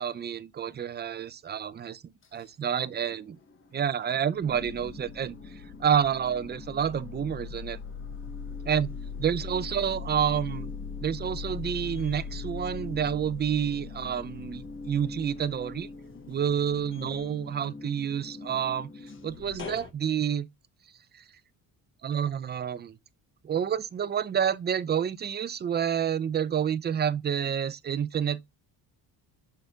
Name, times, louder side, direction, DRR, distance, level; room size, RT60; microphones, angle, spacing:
voice 1, 0.0-2.0 2.3-3.4 3.7-5.4 5.8-7.8 8.6-8.9 9.2-10.7 11.0-15.9 16.3-18.9 19.2-20.5 21.1-21.2 22.0-23.0 23.4-28.4, right 8 dB, 25° right, 0.6 m, -29 dB
sound 1, 2.8-3.6 4.0-19.9, left 5 dB, 30° left, 1.3 m, -40 dB
6.6 x 5.2 x 3.5 m
cardioid pair, 140°, 41 cm